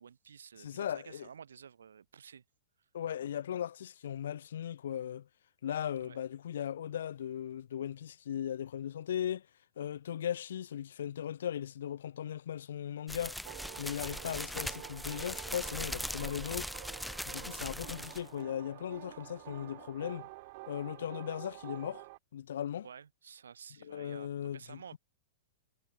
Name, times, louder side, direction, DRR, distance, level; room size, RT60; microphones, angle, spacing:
voice 1, 0.0-2.4 6.0-6.2 22.8-25.0, right 7 dB, 80° right, 1.3 m, -52 dB
voice 2, 0.6-1.3 2.9-5.3 5.6-9.5 9.8-13.4 13.8-16.7 17.3-20.3 20.7-22.0 22.3-22.9 23.8-25.0, left 10 dB, 70° left, 0.6 m, -38 dB
sound 1, 13.1-18.3, equal, ahead, 0.4 m, -40 dB
sound 2, 13.4-22.2, right 24 dB, 50° right, 1.7 m, -49 dB
hypercardioid pair, 115°, 0 cm